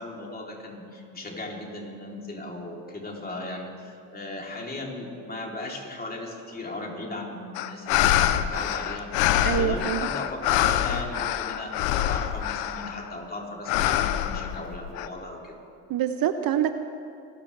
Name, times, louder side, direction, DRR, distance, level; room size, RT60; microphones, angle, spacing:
voice 1, 0.0-15.6, left 2 dB, 20° left, -1 dB, 3.3 m, -37 dB
sound 1, 7.5-13.1 13.7-15.1, left 11 dB, 85° left, 0.8 m, -25 dB
voice 2, 9.4-10.0 15.9-16.7, right 10 dB, 50° right, 9 dB, 0.8 m, -25 dB
25.0 x 13.0 x 3.4 m, 2.5 s
supercardioid pair, 75°, 44 cm